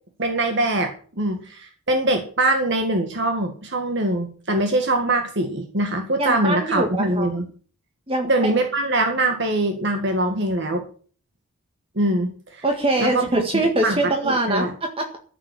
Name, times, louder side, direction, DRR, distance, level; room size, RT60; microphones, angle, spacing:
voice 1, 0.2-0.9 1.2-7.4 8.2-10.8 12.0-12.6 13.0-13.5 13.8-14.7, right 1 dB, 55° right, 4 dB, 1.8 m, -23 dB
voice 2, 6.2-7.3 8.1-8.5 12.6-15.2, right 2 dB, 25° right, 4 dB, 1.7 m, -23 dB
14.0 x 7.5 x 8.4 m, 0.43 s
head